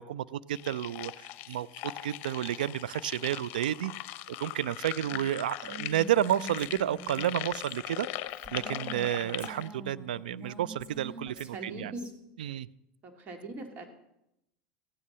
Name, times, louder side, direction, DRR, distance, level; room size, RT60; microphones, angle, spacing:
voice 1, 0.0-3.9 4.3-8.2 8.5-11.9 12.4-12.7, right 11 dB, 80° right, 18 dB, 0.4 m, -31 dB
sound 1, 0.5-9.7, left 15 dB, 55° left, 0.7 m, -40 dB
Female speech woman speaking, 5.6-9.1 9.4-12.1, right 2 dB, 20° right, 1.8 m, -46 dB
voice 2, 11.5-12.1 13.0-13.9, right 2 dB, 40° right, 4 dB, 2.5 m, -42 dB
15.5 x 9.7 x 5.5 m, 0.84 s
hypercardioid pair, 90°, 5 cm